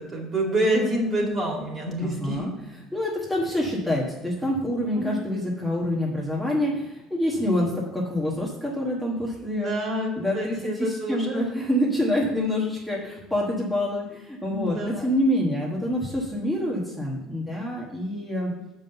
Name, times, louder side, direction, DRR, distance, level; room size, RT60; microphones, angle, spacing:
voice 1, 0.0-2.5 4.9-5.2 9.5-11.5 14.5-15.1, right 1 dB, 25° right, 0 dB, 2.1 m, -27 dB
voice 2, 2.0-2.5 2.9-9.8 10.2-18.5, left 1 dB, ahead, -6 dB, 1.3 m, -26 dB
7.5 x 5.5 x 6.7 m, 1.0 s
cardioid pair, 165°, 0 cm